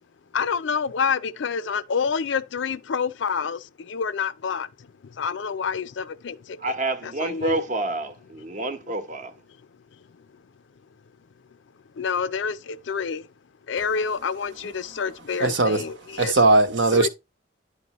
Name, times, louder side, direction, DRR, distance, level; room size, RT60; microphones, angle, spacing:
voice 1, 0.3-4.7 5.2-6.6 7.0-7.6 12.0-13.2 13.7-16.3 16.9-17.1, left 6 dB, 70° left, 0.5 m, -28 dB
voice 2, 6.6-9.3, right 2 dB, 40° right, 0.9 m, -28 dB
voice 3, 15.4-15.8 16.2-17.1, right 2 dB, 70° right, 1.0 m, -19 dB
9.9 x 5.4 x 3.0 m
head